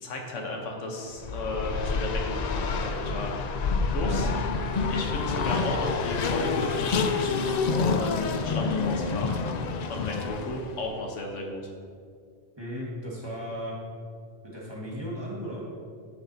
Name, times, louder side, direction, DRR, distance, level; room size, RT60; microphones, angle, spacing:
voice 1, 0.0-3.5 3.9-4.3 4.9-9.4 9.9-11.6, left 2 dB, 85° left, 1 dB, 1.4 m, -34 dB
Race car auto racing, 1.2-10.8, left 4 dB, 65° left, 0.4 m, -28 dB
voice 2, 12.6-13.8 14.4-15.6, equal, 20° right, -6 dB, 1.7 m, -36 dB
9.4 x 7.3 x 2.8 m, 2.2 s
omnidirectional pair, 1.2 m